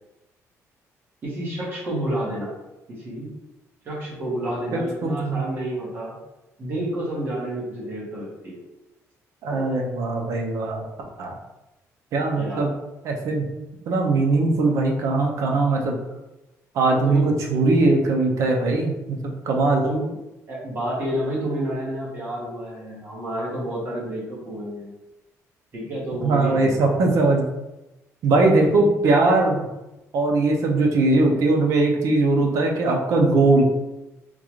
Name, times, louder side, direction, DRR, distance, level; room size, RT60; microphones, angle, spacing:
voice 1, 1.2-2.5 2.9-3.3 3.8-6.2 6.6-8.6 9.5-9.8 12.4-12.7 16.8-17.3 19.8-20.1 20.5-24.9 25.7-26.8, right 1 dB, 40° right, -5 dB, 1.2 m, -30 dB
voice 2, 4.7-5.4 9.4-10.9 11.2-11.4 12.1-12.7 13.0-13.4 13.9-16.0 16.7-19.2 19.4-19.8 26.2-27.4 28.2-29.7 30.1-33.6, right 2 dB, 60° right, 1 dB, 0.6 m, -20 dB
3.7 x 2.4 x 3.0 m, 0.98 s
cardioid pair, 165°, 6 cm